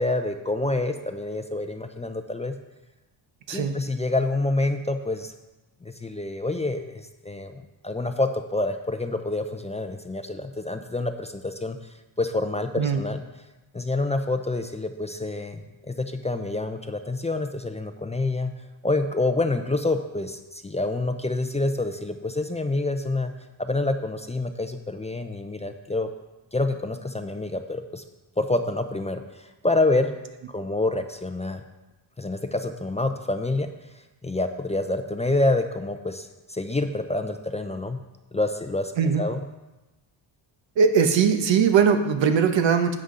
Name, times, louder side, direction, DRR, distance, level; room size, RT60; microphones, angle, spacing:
voice 1, 0.0-2.5 3.5-5.3 5.8-11.8 12.2-13.2 13.7-18.5 18.8-23.3 23.6-26.1 26.5-28.0 28.4-30.1 30.5-31.6 32.2-33.7 34.2-38.0 38.3-39.4, left 2 dB, 15° left, 7 dB, 0.6 m, -27 dB
voice 2, 3.5-3.8 12.8-13.1 39.0-39.2 40.8-42.9, right 6 dB, 65° right, 7 dB, 1.1 m, -20 dB
11.0 x 7.7 x 3.8 m, 1.1 s
cardioid pair, 100°, 47 cm